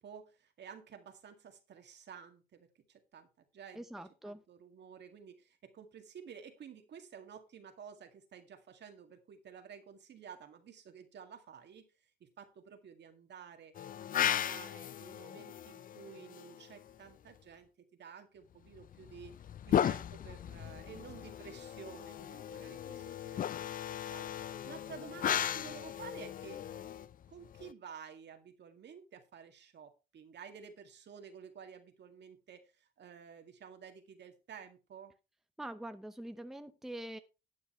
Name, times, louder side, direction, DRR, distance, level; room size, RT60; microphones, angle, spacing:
voice 1, 0.0-3.3 3.5-3.9 4.2-13.7 14.2-19.3 19.7-23.4 23.7-26.6 27.3-35.1, right 7 dB, 60° right, 2.0 m, -52 dB
voice 2, 3.7-4.4 35.6-37.2, right 1 dB, ahead, 0.8 m, -44 dB
sound 1, 13.8-16.9 18.7-27.7, left 10 dB, 45° left, 0.4 m, -37 dB
12.5 x 8.6 x 3.1 m
cardioid pair, 90°, 20 cm